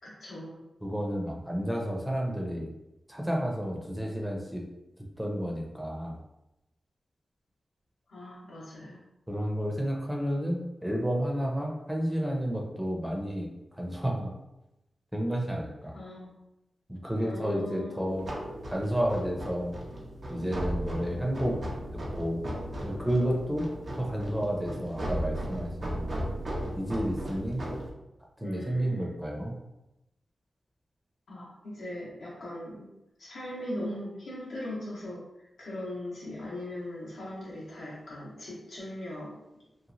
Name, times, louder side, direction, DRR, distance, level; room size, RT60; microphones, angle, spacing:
voice 1, 0.0-0.7 8.1-9.0 15.9-16.4 17.2-18.0 28.4-29.1 31.3-32.9 33.2-35.2 35.6-39.6, left 1 dB, 90° left, -7 dB, 1.2 m, -39 dB
voice 2, 0.8-2.7 3.1-4.6 5.0-6.2 9.3-14.3 15.1-16.0 16.9-18.3 18.7-19.8 20.3-21.6 21.9-22.4 22.8-23.7 24.0-26.0 26.7-27.8 28.4-29.6, equal, 5° right, 0 dB, 0.6 m, -31 dB
sound 1, 18.1-27.9, right 1 dB, 55° right, 0.6 m, -36 dB
3.0 x 2.2 x 2.6 m, 0.93 s
cardioid pair, 50°, 0 cm